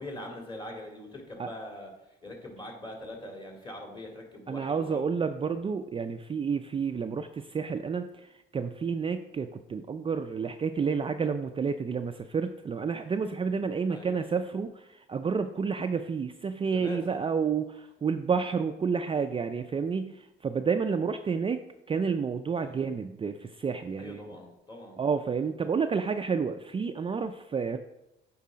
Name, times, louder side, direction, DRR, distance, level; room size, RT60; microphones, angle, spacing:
voice 1, 0.0-5.0 13.9-14.3 16.7-17.3 22.5-22.9 24.0-25.0, left 1 dB, 25° left, 0 dB, 2.7 m, -43 dB
voice 2, 4.5-21.6 21.9-24.2 25.0-27.8, right 5 dB, 25° right, 7 dB, 0.4 m, -30 dB
8.1 x 4.7 x 5.1 m, 0.89 s
cardioid pair, 90°, 20 cm